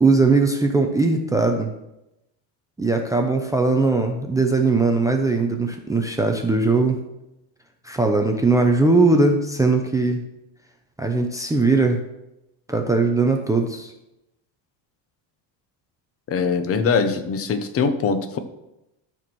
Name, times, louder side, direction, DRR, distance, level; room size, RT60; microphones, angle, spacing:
voice 1, 0.0-1.7 2.8-7.0 7.8-10.2 11.0-12.0 12.7-13.9, right 3 dB, 5° right, 4 dB, 0.5 m, -19 dB
voice 2, 16.3-18.4, left 5 dB, 30° left, 9 dB, 0.8 m, -22 dB
12.5 x 4.4 x 6.1 m, 0.89 s
cardioid pair, 155°, 48 cm